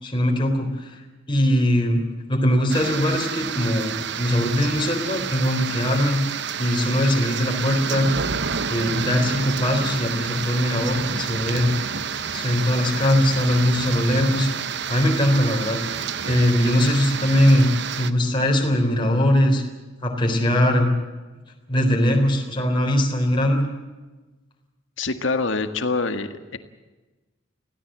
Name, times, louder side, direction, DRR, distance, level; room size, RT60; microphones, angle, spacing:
voice 1, 0.0-1.0 1.3-2.0 2.3-6.2 6.6-8.1 8.7-11.7 12.3-14.5 14.9-19.6 20.0-20.9 21.7-23.7, left 1 dB, 25° left, 1 dB, 3.9 m, -21 dB
sound 1, 2.7-18.1, right 6 dB, 60° right, 1.0 m, -29 dB
voice 2, 25.0-26.6, left 3 dB, 70° left, 9 dB, 1.8 m, -25 dB
26.0 x 17.0 x 7.6 m, 1.2 s
head